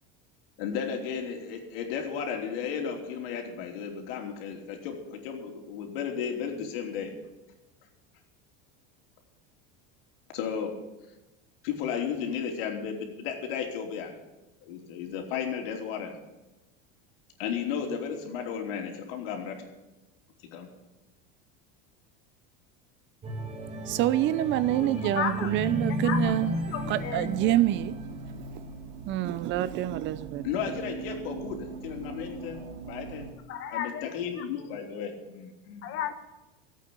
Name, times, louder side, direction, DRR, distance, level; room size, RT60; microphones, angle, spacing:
voice 1, 0.6-7.1 10.3-10.7 11.6-14.1 14.6-16.1 17.4-19.6 20.4-20.7 30.4-33.3 33.7-35.9, left 7 dB, 80° left, 3.2 m, -34 dB
sound 1, 23.2-28.5 29.0-29.2, left 1 dB, 20° right, 2.0 m, -34 dB
voice 2, 23.9-26.5 26.9-28.0 29.1-30.4, right 13 dB, 40° right, 0.7 m, -26 dB
voice 3, 24.6-25.5 25.9-27.5 33.5-34.4 35.8-36.1, left 9 dB, 45° left, 1.5 m, -35 dB
sound 2, 26.1-33.3, right 3 dB, 80° right, 2.4 m, -41 dB
15.0 x 8.5 x 8.6 m
supercardioid pair, 150°, 29 cm